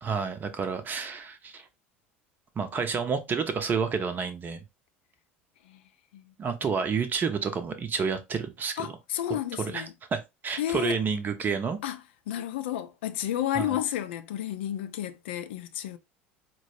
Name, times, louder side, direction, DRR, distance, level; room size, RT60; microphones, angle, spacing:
voice 1, 0.0-1.7 2.6-4.6 6.4-8.9 9.6-9.9 10.1-11.8 13.5-13.8, right 5 dB, 30° right, 0.6 m, -29 dB
voice 2, 8.8-9.9 10.6-11.0 11.8-12.0 12.3-16.0, left 11 dB, 60° left, 0.4 m, -31 dB
4.4 x 2.0 x 2.9 m
figure-of-eight pair, 70°, 7 cm